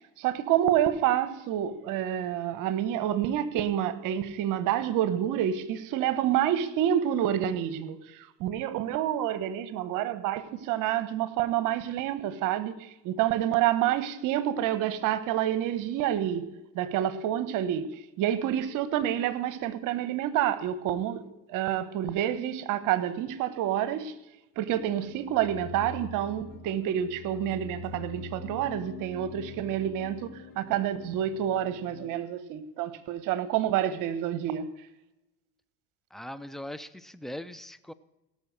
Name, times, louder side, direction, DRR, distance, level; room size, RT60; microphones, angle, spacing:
voice 1, 0.0-12.8 13.0-16.5 16.7-17.9 18.2-24.1 24.6-34.7, right 11 dB, 65° right, 1.2 m, -28 dB
sound 1, 24.8-32.1, left 5 dB, 70° left, 2.5 m, -44 dB
voice 2, 36.1-37.9, left 1 dB, ahead, 0.6 m, -40 dB
17.0 x 6.9 x 6.6 m
supercardioid pair, 95°, 35 cm